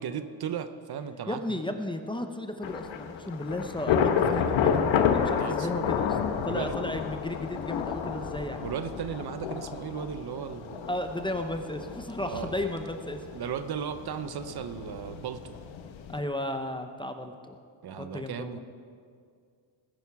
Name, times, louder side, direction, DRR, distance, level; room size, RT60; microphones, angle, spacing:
voice 1, 0.0-1.6 5.4-5.7 6.5-6.7 8.6-10.9 12.2-12.5 13.3-15.6 17.8-18.6, right 8 dB, 55° right, 10 dB, 0.8 m, -36 dB
voice 2, 1.3-6.2 6.4-8.7 10.9-13.2 16.1-17.6 18.0-18.6, left 1 dB, 10° left, 6 dB, 0.7 m, -34 dB
Thunder / Rain, 2.6-16.2, left 7 dB, 80° left, 1.1 m, -30 dB
19.5 x 11.0 x 4.7 m, 2.2 s
cardioid pair, 125°, 46 cm